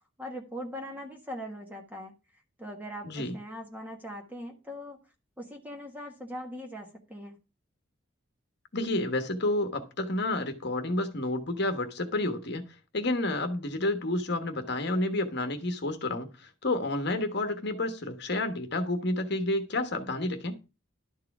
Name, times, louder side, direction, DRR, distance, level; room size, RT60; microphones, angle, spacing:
voice 1, 0.2-2.1 2.6-5.0 5.4-7.4, equal, 10° right, 1.4 m, -40 dB
voice 2, 3.0-3.3 8.7-12.6 12.9-20.6, left 2 dB, 55° left, 1.2 m, -30 dB
12.0 x 4.7 x 5.9 m
head